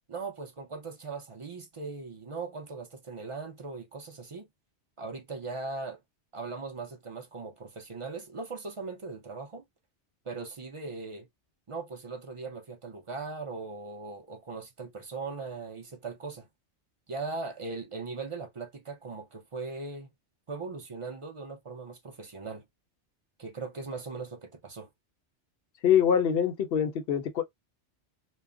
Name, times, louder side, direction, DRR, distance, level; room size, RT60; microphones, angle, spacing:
voice 1, 0.1-4.5 5.0-6.0 6.3-9.6 10.2-11.3 11.7-16.5 17.1-20.1 20.5-22.6 23.4-24.9, right 4 dB, 40° right, 0.4 m, -39 dB
voice 2, 25.8-27.4, left 8 dB, 60° left, 0.7 m, -24 dB
2.2 x 2.0 x 3.6 m
omnidirectional pair, 1.2 m